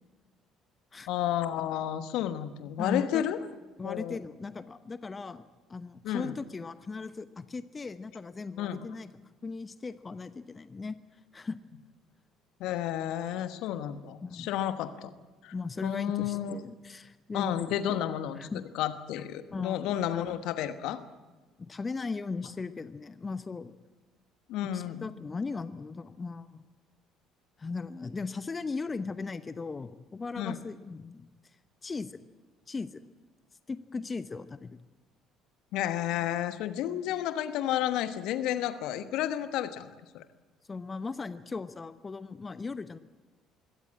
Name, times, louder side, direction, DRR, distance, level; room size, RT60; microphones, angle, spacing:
voice 1, 1.1-3.4 3.8-4.2 6.0-6.3 8.6-8.8 12.6-15.1 15.4-15.5 15.8-16.6 17.3-18.5 18.7-21.0 24.5-25.1 30.4-30.6 35.7-40.2, left 11 dB, 65° left, 11 dB, 1.2 m, -31 dB
voice 2, 2.8-3.2 3.8-9.1 9.4-11.0 11.3-11.6 14.2-14.5 15.5-18.0 18.4-18.6 19.5-19.9 21.6-23.7 24.7-26.6 27.6-31.3 31.8-32.2 32.7-33.0 33.7-34.8 40.7-43.0, left 4 dB, 25° left, 13 dB, 0.9 m, -37 dB
23.0 x 17.0 x 8.7 m, 1.3 s
figure-of-eight pair, 55°, 0 cm